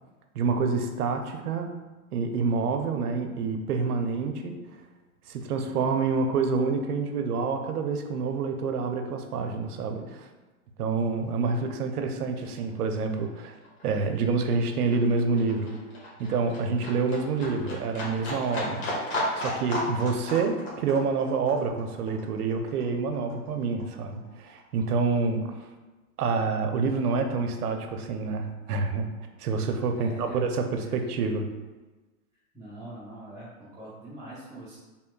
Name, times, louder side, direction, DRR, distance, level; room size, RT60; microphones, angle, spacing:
voice 1, 0.3-1.7 2.1-4.6 5.3-10.3 10.8-13.6 13.8-15.7 16.2-18.9 19.4-25.5 26.2-29.1 29.4-31.5, right 4 dB, 75° right, 6 dB, 0.7 m, -27 dB
Livestock farm animals working animals, 12.1-12.2 12.5-23.5 23.8-24.8 25.1-25.2, left 1 dB, 45° left, 1.4 m, -35 dB
voice 2, 29.9-30.4 30.8-31.0 32.5-34.8, right 1 dB, 5° right, -13 dB, 0.8 m, -43 dB
4.4 x 3.5 x 2.2 m, 1.2 s
hypercardioid pair, 125°, 45 cm